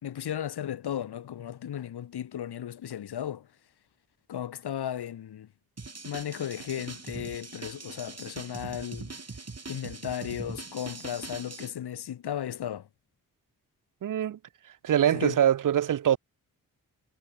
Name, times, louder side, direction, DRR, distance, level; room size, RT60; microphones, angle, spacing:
voice 1, 0.0-3.5 4.3-5.5 6.0-9.1 9.7-12.9 15.1-15.4, left 10 dB, 80° left, 1.6 m, -35 dB
sound 1, 5.8-11.7, right 4 dB, 40° right, 4.8 m, -42 dB
voice 2, 14.0-14.4 14.8-16.2, right 10 dB, 55° right, 0.6 m, -23 dB
supercardioid pair, 45°, 38 cm